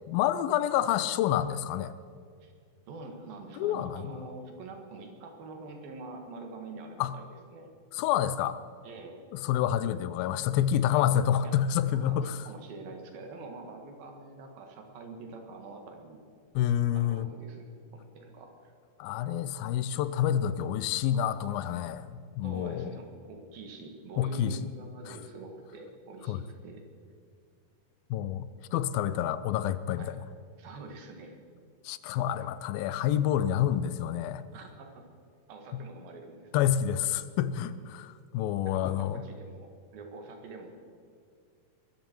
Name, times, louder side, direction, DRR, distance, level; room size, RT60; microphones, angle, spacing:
voice 1, 0.1-1.9 3.6-4.1 7.0-7.1 7.9-8.6 9.3-12.5 16.6-17.3 19.0-22.9 24.2-24.7 25.1-25.2 26.3-26.4 28.1-30.2 31.9-34.4 36.5-39.2, left 10 dB, 85° left, 14 dB, 2.5 m, -28 dB
voice 2, 2.9-7.7 8.8-9.3 10.9-11.0 11.4-11.5 12.0-16.2 16.9-17.7 17.9-18.7 22.4-26.8 30.0-30.2 30.6-31.4 34.5-35.0 35.5-36.5 37.5-37.7 38.7-39.7 39.9-40.7, right 3 dB, 80° right, 3 dB, 3.6 m, -45 dB
21.5 x 13.5 x 4.5 m, 2.2 s
omnidirectional pair, 4.1 m